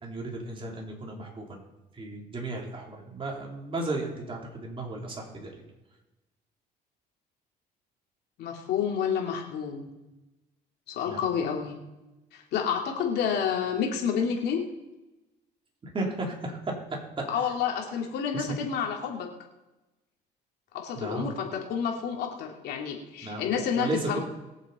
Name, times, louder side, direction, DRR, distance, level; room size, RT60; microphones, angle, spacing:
voice 1, 0.0-1.6 1.9-5.5 11.0-11.2 15.8-16.7 18.3-18.6 20.9-21.3 23.2-24.2, right 2 dB, 30° right, 0 dB, 3.4 m, -34 dB
voice 2, 8.4-9.9 10.9-11.8 12.3-14.6 17.3-19.3 20.7-24.2, left 7 dB, 75° left, 1 dB, 2.6 m, -29 dB
22.0 x 7.3 x 4.2 m, 1.0 s
cardioid pair, 110°, 17 cm